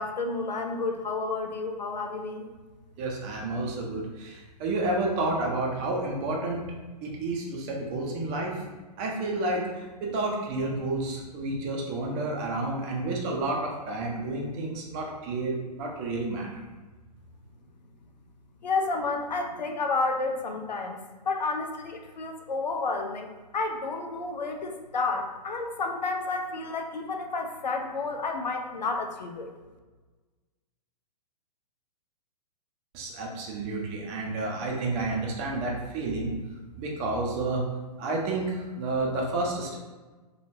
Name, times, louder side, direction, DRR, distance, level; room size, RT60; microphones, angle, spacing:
voice 1, 0.0-2.5 18.6-21.0 21.3-29.5, left 3 dB, 90° left, 4 dB, 0.5 m, -31 dB
voice 2, 3.0-6.7 7.0-8.6 9.0-16.5 32.9-36.3 36.8-37.6 38.0-39.8, right 2 dB, 30° right, -1 dB, 0.6 m, -30 dB
3.1 x 2.3 x 2.7 m, 1.3 s
hypercardioid pair, 120°, 21 cm